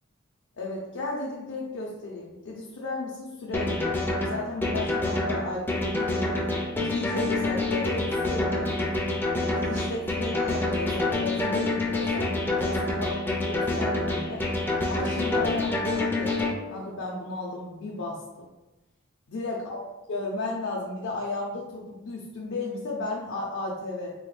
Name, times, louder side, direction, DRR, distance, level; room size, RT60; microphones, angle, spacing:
voice 1, 0.6-6.4 6.7-8.9 9.6-14.4 14.9-16.4 16.7-18.5 19.3-19.8 20.1-24.1, left 2 dB, 65° left, -4 dB, 0.5 m, -34 dB
sound 1, 3.5-16.5, left 2 dB, 10° left, 0.4 m, -27 dB
3.3 x 2.1 x 3.2 m, 1.1 s
head